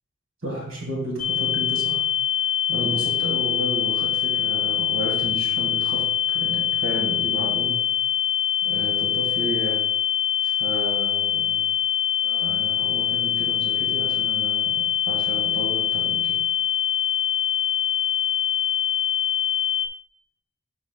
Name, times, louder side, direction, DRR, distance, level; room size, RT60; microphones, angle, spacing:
voice 1, 0.4-2.0 2.7-7.8 8.6-9.8 10.4-11.7 12.2-16.4, right 1 dB, 80° right, -1 dB, 1.9 m, -32 dB
sound 1, 1.2-19.9, left 10 dB, 45° left, 0.8 m, -24 dB
12.0 x 4.8 x 2.3 m, 0.83 s
head